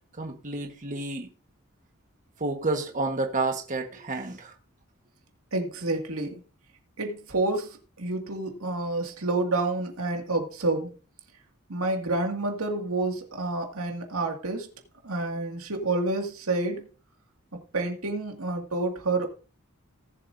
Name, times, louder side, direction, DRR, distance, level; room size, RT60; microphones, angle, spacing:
voice 1, 0.1-1.3 2.4-4.5, right 3 dB, 35° right, 1.3 m, -30 dB
voice 2, 5.5-6.4 7.0-10.9 11.7-14.7 15.0-16.9 17.5-19.3, right 2 dB, 85° right, 2.1 m, -29 dB
18.5 x 7.6 x 2.6 m
head